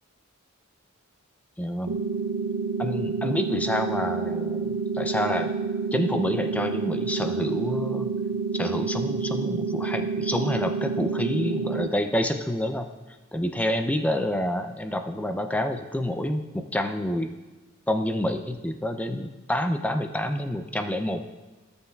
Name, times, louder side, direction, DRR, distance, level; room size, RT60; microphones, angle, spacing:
voice 1, 1.6-2.0 2.8-5.5 5.9-8.1 8.6-12.9 13.3-17.3 17.9-21.2, left 1 dB, 5° left, 6 dB, 0.4 m, -28 dB
sound 1, 1.9-11.9, right 5 dB, 85° right, 0.4 m, -29 dB
16.0 x 6.8 x 2.3 m, 1.2 s
head